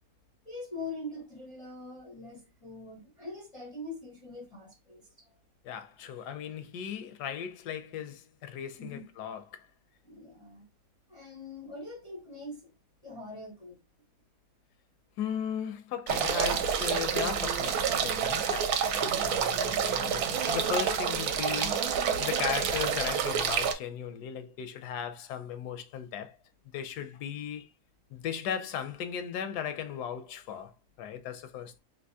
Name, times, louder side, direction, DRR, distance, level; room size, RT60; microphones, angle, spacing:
voice 1, 0.5-5.3 8.8-9.1 10.0-10.6 11.1-12.7 13.0-13.8, left 2 dB, 40° left, 0.4 m, -43 dB
voice 2, 5.6-9.7 15.2-21.9 22.2-26.4 26.7-27.7 28.1-30.7 31.0-31.8, left 8 dB, 80° left, 1.1 m, -37 dB
sound 1, 16.1-23.7, right 7 dB, 75° right, 1.0 m, -28 dB
3.4 x 2.6 x 2.6 m
omnidirectional pair, 1.7 m